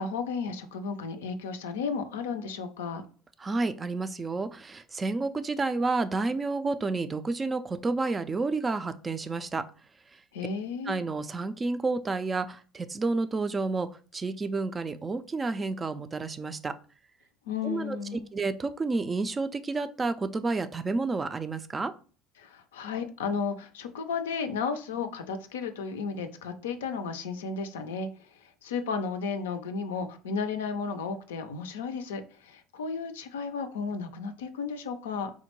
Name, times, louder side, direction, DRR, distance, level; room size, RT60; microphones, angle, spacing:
voice 1, 0.0-3.1 10.3-11.0 17.5-18.3 22.4-35.3, left 5 dB, 85° left, 8 dB, 0.4 m, -33 dB
voice 2, 3.4-9.6 10.9-13.9 14.1-16.7 17.6-21.9, right 3 dB, 25° right, 11 dB, 0.3 m, -30 dB
3.5 x 2.1 x 3.0 m, 0.38 s
hypercardioid pair, 75°, 0 cm